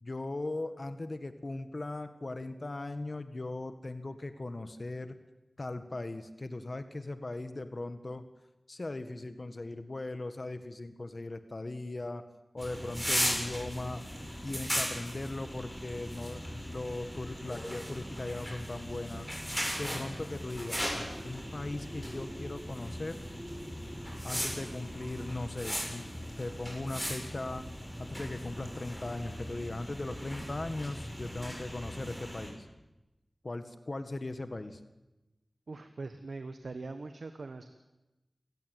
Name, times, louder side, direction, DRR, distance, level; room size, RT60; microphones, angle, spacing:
voice 1, 0.0-5.2 5.6-8.2 8.7-12.2 12.5-14.0 14.4-23.2 24.2-27.6 28.0-32.7 33.4-34.8, left 2 dB, 50° left, 10 dB, 1.7 m, -39 dB
sound 1, 12.6-32.5, equal, ahead, 7.7 m, -38 dB
voice 2, 35.7-37.7, right 3 dB, 90° right, 9 dB, 1.3 m, -42 dB
27.5 x 16.0 x 9.3 m, 1.0 s
wide cardioid pair, 55°, 0 cm